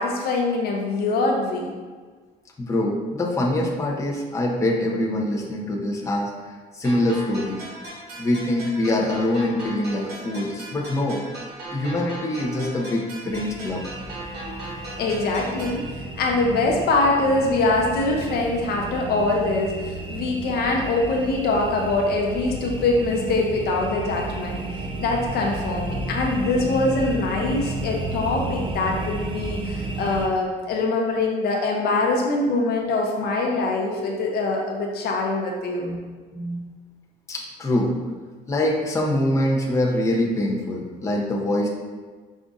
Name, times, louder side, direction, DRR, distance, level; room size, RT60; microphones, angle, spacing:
voice 1, 0.0-1.7 15.0-24.6 25.0-35.9, left 2 dB, 70° left, 0 dB, 0.6 m, -23 dB
voice 2, 2.6-7.6 8.2-11.2 11.7-13.8 35.8-36.6 37.3-37.9 38.5-41.7, left 1 dB, 15° left, -2 dB, 0.6 m, -24 dB
sound 1, 6.8-15.8, right 1 dB, 70° right, 1.5 m, -38 dB
sound 2, 13.3-30.3, right 2 dB, 30° right, 0.4 m, -32 dB
5.2 x 2.5 x 2.4 m, 1.4 s
cardioid pair, 110°, 17 cm